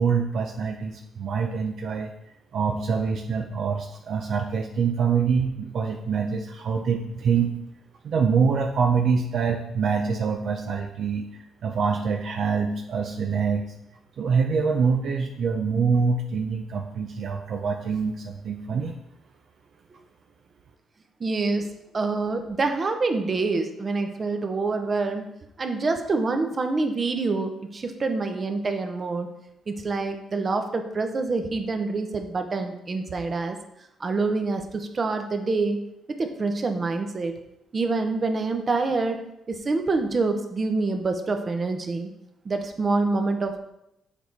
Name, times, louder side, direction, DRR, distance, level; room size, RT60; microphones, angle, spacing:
voice 1, 0.0-2.1 2.5-7.5 8.0-11.3 11.6-13.7 14.2-18.9, right 5 dB, 60° right, 3 dB, 0.6 m, -25 dB
voice 2, 21.2-25.3 25.6-29.3 29.7-33.6 34.0-35.8 36.2-37.3 37.7-39.2 39.5-42.1 42.4-43.6, right 3 dB, 35° right, 6 dB, 0.9 m, -26 dB
7.3 x 4.5 x 4.1 m, 0.81 s
cardioid pair, 90°, 0 cm